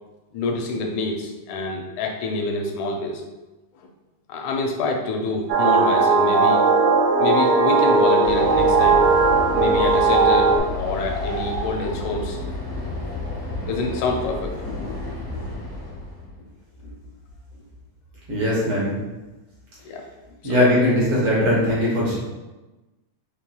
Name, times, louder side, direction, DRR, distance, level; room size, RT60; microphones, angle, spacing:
voice 1, 0.3-3.2 3.8-3.9 4.3-6.6 7.2-9.0 9.5-12.4 13.7-14.6 16.8-17.0 19.9-20.0 20.4-20.7, left 2 dB, 80° left, 2 dB, 1.9 m, -26 dB
sound 1, 5.5-10.6, right 4 dB, 85° right, 2.1 m, -17 dB
Train, 8.2-16.4, left 2 dB, 60° left, 0.4 m, -31 dB
voice 2, 18.3-19.0 20.4-22.2, left 1 dB, 60° right, -6 dB, 1.7 m, -20 dB
5.9 x 3.0 x 2.2 m, 1.1 s
omnidirectional pair, 3.4 m